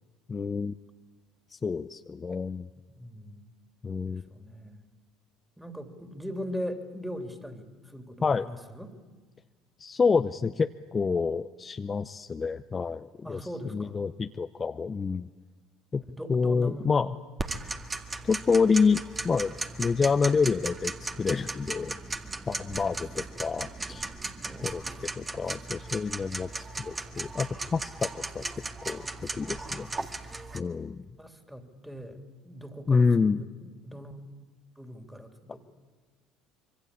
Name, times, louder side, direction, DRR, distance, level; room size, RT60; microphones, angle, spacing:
voice 1, 0.3-0.7 1.5-2.7 3.8-4.2 8.2-8.5 9.8-13.4 13.7-15.3 15.9-16.0 16.3-17.1 18.2-19.5 19.8-20.9 21.2-21.9 22.5-24.1 24.6-24.8 25.2-26.5 26.8-28.5 28.8-29.0 29.3-29.9 30.5-31.0 32.9-33.4, left 5 dB, 30° left, 9 dB, 0.7 m, -27 dB
voice 2, 2.9-3.5 4.1-4.8 5.6-8.9 13.2-14.0 16.1-17.1 22.5-22.9 24.4-24.8 25.2-25.4 31.2-32.2 32.4-34.2 34.8-35.6, equal, 5° right, 6 dB, 3.1 m, -40 dB
Tick-tock, 17.4-30.6, right 3 dB, 25° right, 1.9 m, -37 dB
25.5 x 24.0 x 8.5 m, 1.4 s
hypercardioid pair, 70°, 0 cm